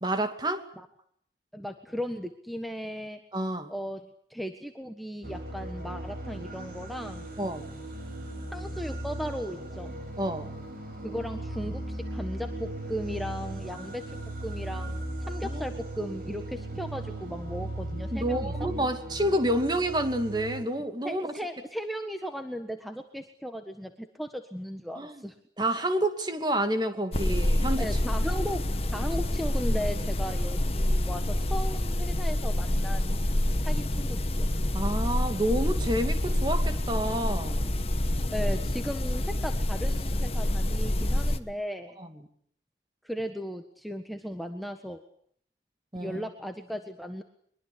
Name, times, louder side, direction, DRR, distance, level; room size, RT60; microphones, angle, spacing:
voice 1, 0.0-0.7 3.3-3.7 7.4-7.7 10.2-10.5 15.4-15.6 18.1-21.3 25.0-25.2 25.6-27.9 29.7-29.8 34.7-37.7 42.0-42.1 45.9-46.2, right 1 dB, 25° right, 7 dB, 2.5 m, -29 dB
voice 2, 1.5-3.2 3.7-7.3 8.5-9.9 11.0-18.7 21.0-25.4 27.8-28.6 28.9-33.2 33.6-34.5 38.3-42.0 43.0-45.0 45.9-47.2, equal, ahead, 5 dB, 1.4 m, -36 dB
sound 1, 5.2-20.6, right 1 dB, 50° right, 6.2 m, -37 dB
sound 2, 27.1-41.4, left 1 dB, 35° left, 1.3 m, -27 dB
23.5 x 23.0 x 8.6 m, 0.64 s
head